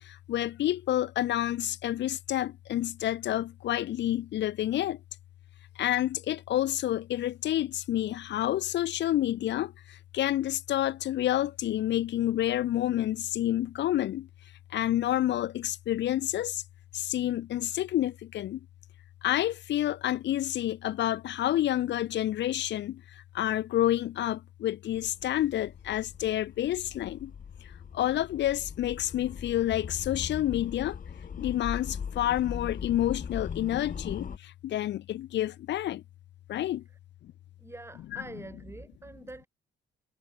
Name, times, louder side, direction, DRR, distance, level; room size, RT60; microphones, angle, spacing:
voice 1, 0.1-5.0 5.8-14.3 14.7-16.6 16.9-18.6 19.2-23.0 23.3-27.3 27.9-31.0 31.4-36.0 36.5-36.8 38.1-38.2, left 13 dB, 65° left, 0.5 m, -29 dB
sound 1, 24.9-34.4, left 6 dB, 45° left, 2.5 m, -40 dB
voice 2, 37.6-39.5, right 2 dB, 15° right, 3.3 m, -45 dB
cardioid pair, 90°, 20 cm